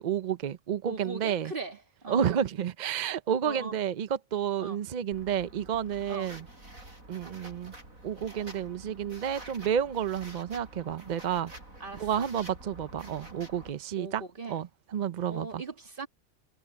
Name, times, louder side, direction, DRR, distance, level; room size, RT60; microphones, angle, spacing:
voice 1, 0.0-1.5 2.1-6.4 7.1-7.7 8.0-11.5 12.0-14.2 14.5-14.7 14.9-15.6, right 9 dB, 55° right, 0.5 m, -30 dB
voice 2, 0.9-2.4 3.4-3.8 4.6-4.8 6.1-6.3 11.8-12.3 14.0-14.7 15.3-16.1, right 3 dB, 40° right, 2.2 m, -40 dB
sound 1, 5.1-13.7, right 1 dB, 85° right, 8.1 m, -48 dB
omnidirectional pair, 1.4 m